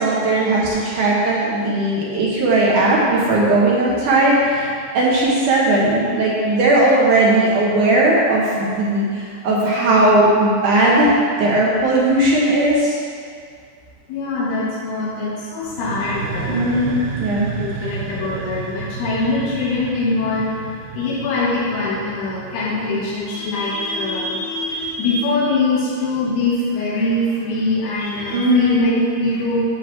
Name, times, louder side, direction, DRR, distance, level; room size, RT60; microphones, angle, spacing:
voice 1, 0.0-13.0 16.5-17.5 28.3-28.8, right 1 dB, 70° right, -5 dB, 2.0 m, -17 dB
voice 2, 14.1-16.9 17.5-20.5 21.0-29.6, left 2 dB, 70° left, -7 dB, 3.6 m, -23 dB
sound 1, 15.6-23.3, right 5 dB, 90° right, 1.8 m, -32 dB
10.0 x 4.0 x 7.2 m, 2.2 s
omnidirectional pair, 5.0 m